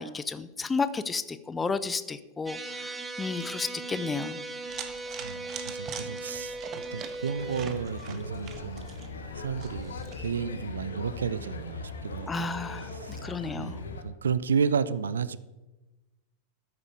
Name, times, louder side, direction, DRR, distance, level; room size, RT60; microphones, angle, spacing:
voice 1, 0.0-4.4 12.3-12.9 13.2-13.8, left 4 dB, 15° left, 13 dB, 0.7 m, -32 dB
sound 1, 2.5-7.7, right 2 dB, 15° right, 1.7 m, -38 dB
sound 2, 4.7-10.3, right 8 dB, 35° right, 1.4 m, -43 dB
voice 2, 5.1-6.6 6.9-13.2 13.5-15.4, right 6 dB, 70° right, 16 dB, 0.6 m, -32 dB
sound 3, 7.4-14.0, left 3 dB, 70° left, 1.4 m, -40 dB
13.5 x 9.7 x 4.9 m, 1.1 s
figure-of-eight pair, 90°, 0 cm